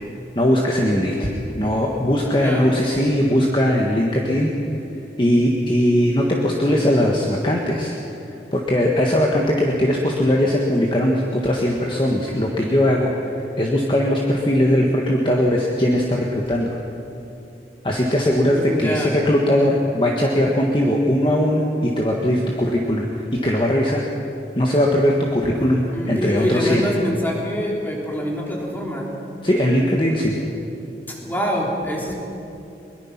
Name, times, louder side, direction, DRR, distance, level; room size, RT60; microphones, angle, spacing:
voice 1, 0.3-4.8 5.2-8.0 8.5-16.7 17.8-24.0 24.6-26.8 29.4-30.3, left 1 dB, 30° left, -1 dB, 1.6 m, -20 dB
voice 2, 2.3-2.7 18.5-19.2 25.9-29.2 31.1-32.1, equal, 10° left, -2 dB, 3.3 m, -25 dB
22.5 x 22.0 x 6.0 m, 2.8 s
head